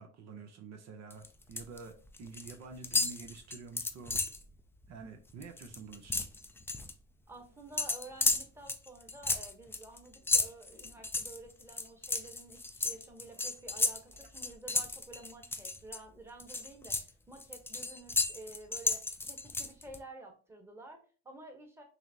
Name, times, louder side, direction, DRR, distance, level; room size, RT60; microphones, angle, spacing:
voice 1, 0.0-1.9 2.2-4.2 4.9-6.3, right 4 dB, 60° right, 0.7 m, -48 dB
sound 1, 1.1-1.8 2.1-2.5 2.8-4.4 4.8-5.0 5.3-6.9 7.8-16.0 16.4-20.0, left 3 dB, 10° left, 0.3 m, -33 dB
voice 2, 7.3-21.8, right 2 dB, 10° right, 1.0 m, -51 dB
5.7 x 2.0 x 2.8 m
cardioid pair, 100°, 30 cm